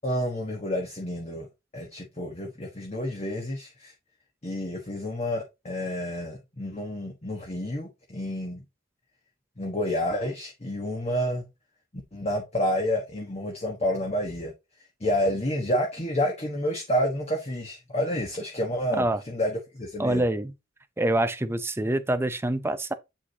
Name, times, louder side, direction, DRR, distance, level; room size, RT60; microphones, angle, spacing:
voice 1, 0.0-1.5 1.7-3.9 4.4-8.6 9.6-11.4 12.1-14.5 15.0-20.2, equal, 30° left, 1.3 m, -29 dB
voice 2, 20.0-20.5 21.0-22.9, right 1 dB, 10° right, 0.6 m, -25 dB
7.9 x 6.1 x 2.8 m
head